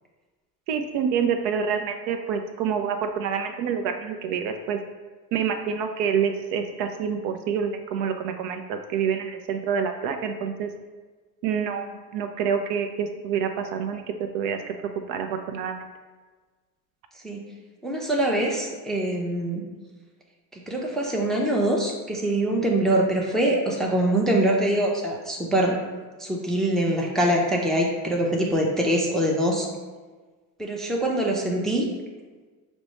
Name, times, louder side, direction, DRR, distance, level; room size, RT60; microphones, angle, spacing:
voice 1, 0.7-4.8 5.3-10.7 11.4-14.0 14.3-14.7 15.1-15.8, right 7 dB, 60° right, 6 dB, 0.5 m, -27 dB
voice 2, 17.8-19.6 20.5-25.7 26.2-29.7 30.6-31.9, right 1 dB, ahead, -1 dB, 0.5 m, -24 dB
5.9 x 2.1 x 3.0 m, 1.4 s
hypercardioid pair, 70°, 50 cm